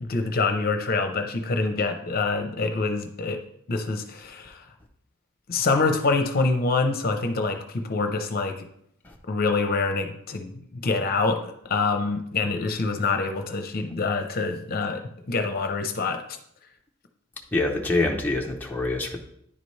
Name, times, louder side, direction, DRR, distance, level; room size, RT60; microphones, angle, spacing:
voice 1, 0.0-3.4 3.7-4.6 5.5-8.5 9.3-15.0 15.3-16.2, left 3 dB, 45° left, 5 dB, 0.7 m, -26 dB
voice 2, 17.5-19.2, left 2 dB, 10° left, -1 dB, 0.6 m, -25 dB
10.0 x 4.1 x 3.2 m, 0.70 s
head